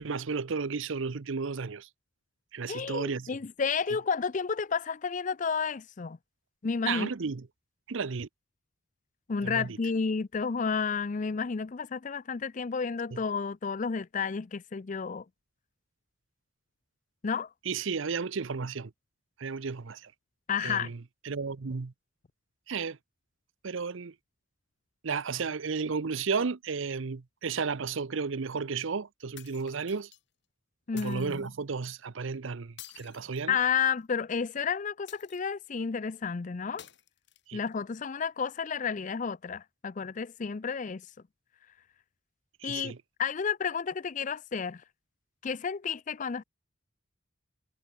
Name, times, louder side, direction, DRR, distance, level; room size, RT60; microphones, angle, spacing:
voice 1, 0.0-1.9 2.5-3.3 6.9-7.4 7.9-8.3 9.4-9.8 13.1-13.2 17.7-18.9 19.4-20.1 20.6-21.0 21.2-21.9 22.7-23.0 23.6-24.1 25.0-30.1 30.9-33.6 37.5-37.6 42.6-43.0, right 5 dB, 70° right, 0.7 m, -33 dB
voice 2, 2.7-6.2 6.6-7.1 9.3-15.2 17.2-17.5 20.5-20.9 30.9-31.5 33.5-36.8 37.5-41.1 42.6-42.9 43.2-44.8 45.4-46.4, left 6 dB, 40° left, 0.4 m, -31 dB
sound 1, 29.4-30.2 31.0-31.5 32.8-34.0 35.1-35.7 36.8-37.7, left 11 dB, 55° left, 5.2 m, -51 dB
head